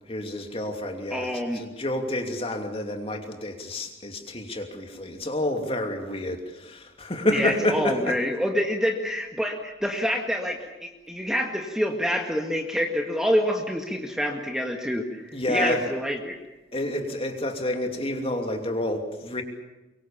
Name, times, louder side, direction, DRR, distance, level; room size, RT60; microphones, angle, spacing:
voice 1, 0.1-8.2 15.3-15.9 16.7-19.4, left 1 dB, 30° left, 4 dB, 2.8 m, -29 dB
voice 2, 1.1-1.6 7.3-16.4, equal, 5° right, 2 dB, 1.9 m, -27 dB
24.0 x 23.5 x 7.3 m, 1.0 s
head